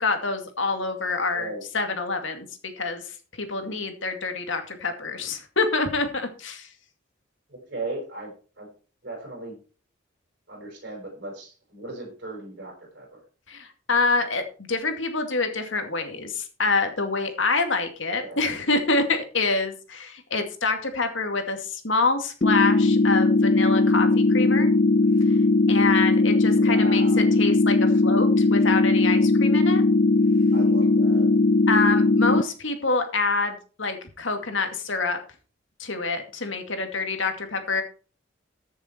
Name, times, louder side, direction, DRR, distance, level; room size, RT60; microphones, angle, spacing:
voice 1, 0.0-2.5 2.8-3.0 3.4-6.7 13.5-14.4 14.7-24.7 25.7-29.8 31.7-35.2 35.8-37.8, left 3 dB, 75° left, 6 dB, 2.3 m, -26 dB
voice 2, 7.5-8.7 9.0-9.6 10.5-13.2 18.2-18.4 26.4-27.2 30.5-31.3, right 2 dB, 55° right, 0 dB, 5.3 m, -37 dB
sound 1, 22.4-32.4, left 2 dB, 35° left, 0.5 m, -19 dB
14.5 x 7.1 x 4.5 m, 0.37 s
head